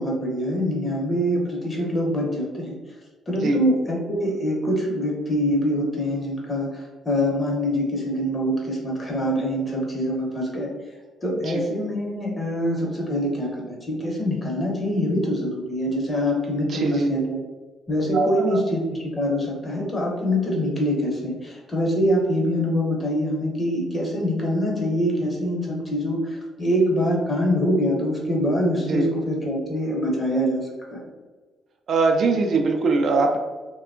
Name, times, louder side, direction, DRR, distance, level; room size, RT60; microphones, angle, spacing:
voice 1, 0.0-2.7 3.3-10.7 11.2-17.4 17.9-18.8 19.1-31.0, equal, 30° left, -1 dB, 0.8 m, -24 dB
voice 2, 16.7-17.1 18.1-18.6 28.9-29.1 31.9-33.4, right 3 dB, 60° right, 3 dB, 0.3 m, -21 dB
2.8 x 2.2 x 2.5 m, 1.3 s
cardioid pair, 90°, 0 cm